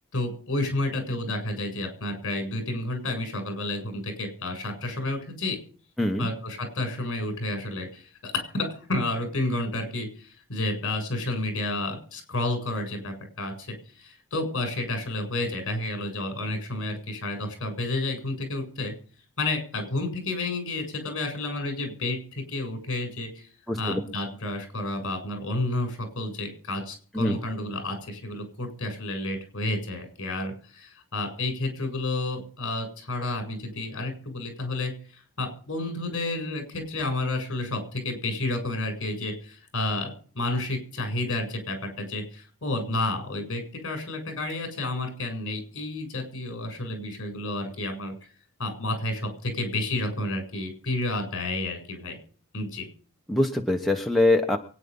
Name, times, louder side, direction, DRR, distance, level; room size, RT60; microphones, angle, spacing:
voice 1, 0.1-5.6 6.2-18.9 19.4-23.5 23.8-48.1 48.6-52.2 52.5-52.9, left 2 dB, 55° left, 5 dB, 7.5 m, -31 dB
voice 2, 6.0-6.3 23.7-24.0 27.1-27.4 53.3-54.6, left 1 dB, ahead, 2 dB, 1.0 m, -23 dB
23.5 x 10.0 x 5.5 m, 0.42 s
head